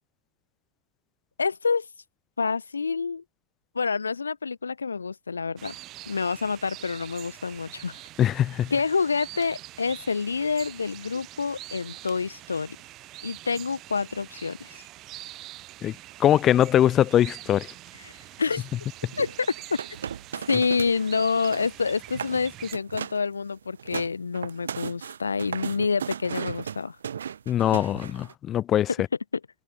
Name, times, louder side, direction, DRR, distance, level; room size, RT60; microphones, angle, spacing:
voice 1, 1.4-1.9 2.4-3.2 3.7-5.7 6.1-8.0 8.7-12.8 13.2-14.8 18.0-18.1 18.4-18.6 19.2-19.8 20.5-27.0, left 5 dB, 75° left, 0.9 m, -27 dB
sound 1, 5.6-22.7, right 17 dB, 35° right, 5.6 m, -45 dB
voice 2, 8.2-8.7 15.8-15.9 16.2-17.7 27.5-28.9, left 11 dB, 30° left, 1.3 m, -21 dB
sound 2, 19.1-21.0 21.3-21.8 22.1-22.4 22.7-23.3 23.6-28.3, right 8 dB, 65° right, 3.4 m, -36 dB
figure-of-eight pair, 90°, 0 cm